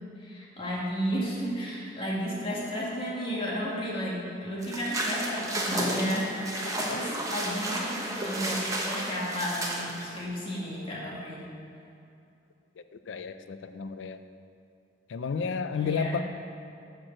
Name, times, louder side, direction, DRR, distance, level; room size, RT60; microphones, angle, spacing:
voice 1, 0.2-11.4 15.8-16.2, equal, 30° left, -6 dB, 2.1 m, -33 dB
sound 1, 4.6-10.2, right 1 dB, 20° right, 1.1 m, -32 dB
voice 2, 13.1-14.2 15.1-16.2, left 5 dB, 85° left, 10 dB, 0.4 m, -32 dB
8.8 x 4.8 x 7.4 m, 2.6 s
head